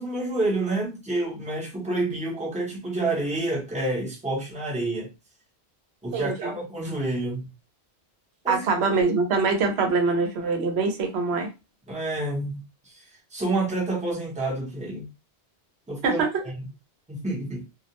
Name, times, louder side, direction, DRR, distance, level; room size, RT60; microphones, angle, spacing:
voice 1, 0.0-5.1 6.0-7.5 8.4-8.6 11.9-12.6 13.3-15.1 15.9-16.5 17.1-17.6, right 2 dB, 10° right, 0.7 m, -28 dB
voice 2, 6.1-6.5 8.5-11.5 16.0-16.3, right 4 dB, 80° right, 0.9 m, -24 dB
2.4 x 2.0 x 2.8 m
omnidirectional pair, 1.1 m